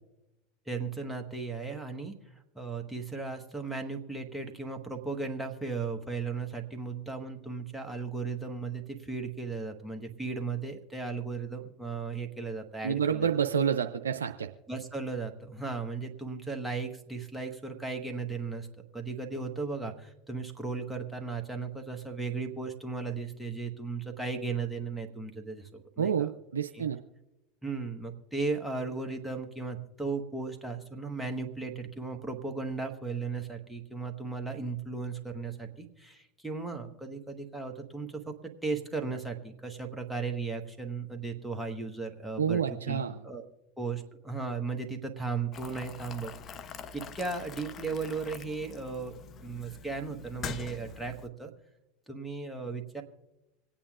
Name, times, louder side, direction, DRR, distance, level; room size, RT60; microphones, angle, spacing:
voice 1, 0.7-2.2 2.5-13.3 14.7-18.7 18.9-26.3 26.7-26.9 27.6-42.6 42.9-43.4 43.8-51.5 52.1-53.0, right 4 dB, 5° right, 2 dB, 1.4 m, -36 dB
voice 2, 12.8-14.5 26.0-27.0 42.4-43.2, right 7 dB, 85° right, 5 dB, 0.4 m, -28 dB
Boiling, 45.5-51.3, left 6 dB, 40° left, 0.7 m, -44 dB
26.0 x 8.7 x 2.5 m, 0.95 s
hypercardioid pair, 85°, 0 cm